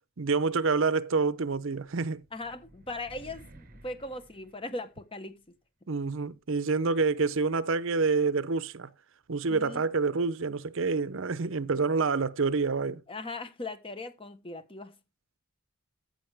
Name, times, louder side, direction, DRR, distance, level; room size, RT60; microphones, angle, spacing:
voice 1, 0.2-2.2 5.9-8.9 9.3-13.0, right 4 dB, 60° right, 0.6 m, -27 dB
sound 1, 2.2-5.2, right 1 dB, 40° right, 1.4 m, -54 dB
voice 2, 2.3-5.4 9.5-9.8 13.1-15.0, left 2 dB, 25° left, 1.2 m, -39 dB
14.5 x 5.7 x 3.5 m
head